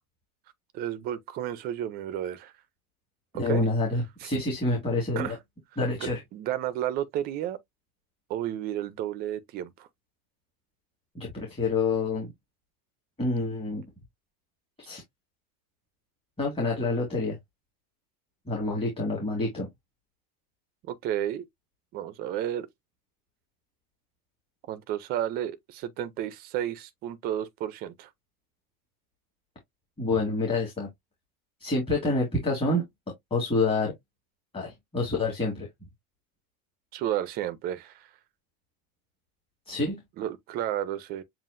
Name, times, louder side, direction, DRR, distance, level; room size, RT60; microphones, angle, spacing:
voice 1, 0.7-2.5 3.3-3.6 4.2-4.3 5.2-5.4 6.3-7.6 8.3-9.9 20.8-21.5 21.9-22.7 24.7-28.1 36.9-38.1 40.2-41.2, right 11 dB, 25° right, 0.3 m, -32 dB
voice 2, 3.3-5.4 5.8-6.2 11.1-12.3 13.2-13.8 14.8-15.0 16.4-17.4 18.5-19.7 30.0-30.9 31.6-32.8 33.3-33.9 34.5-35.7 39.7-40.0, left 2 dB, 10° left, 1.7 m, -27 dB
7.3 x 2.5 x 2.5 m
supercardioid pair, 145°, 43 cm